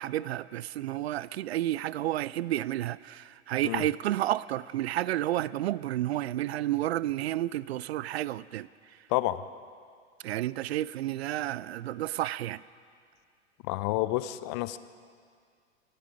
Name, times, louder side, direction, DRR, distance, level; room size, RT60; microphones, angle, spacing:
voice 1, 0.0-8.7 10.2-12.6, right 14 dB, 55° right, 0.4 m, -31 dB
voice 2, 13.7-14.8, left 17 dB, 25° left, 0.3 m, -29 dB
24.0 x 12.0 x 5.0 m
figure-of-eight pair, 90°, 38 cm